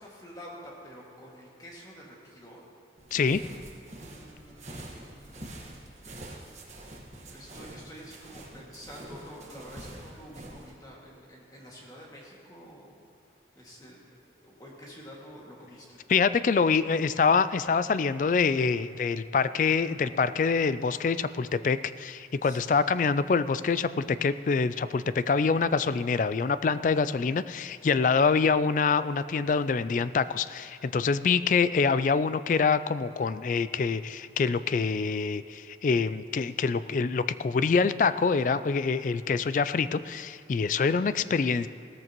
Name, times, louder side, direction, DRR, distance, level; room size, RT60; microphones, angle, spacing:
voice 1, 0.0-2.6 4.0-6.0 7.3-13.0 13.6-16.0 22.4-22.8, equal, 20° left, -4 dB, 2.1 m, -48 dB
sound 1, 3.0-10.7, right 1 dB, 40° right, 1.5 m, -45 dB
voice 2, 3.1-3.4 16.1-41.7, left 5 dB, 45° left, 14 dB, 0.3 m, -25 dB
16.5 x 13.5 x 3.0 m, 2.4 s
head